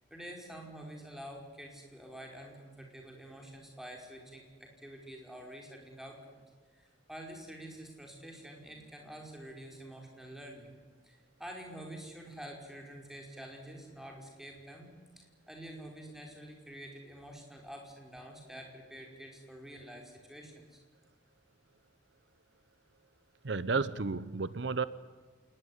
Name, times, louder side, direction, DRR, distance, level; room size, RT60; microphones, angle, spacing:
voice 1, 0.1-6.4 6.7-10.7 11.0-14.9 15.2-20.8, right 1 dB, ahead, 1 dB, 5.1 m, -48 dB
voice 2, 23.4-24.8, right 4 dB, 70° right, 16 dB, 0.8 m, -32 dB
27.5 x 19.5 x 9.9 m, 1.5 s
head